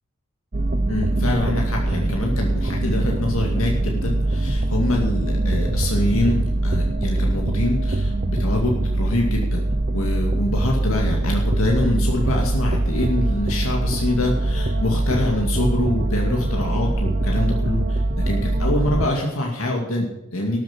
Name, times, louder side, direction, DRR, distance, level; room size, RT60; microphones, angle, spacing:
sound 1, 0.5-19.1, right 2 dB, 35° right, 0.7 m, -22 dB
voice 1, 0.9-20.6, left 1 dB, 70° left, 0 dB, 2.3 m, -25 dB
13.0 x 7.6 x 6.1 m, 0.86 s
head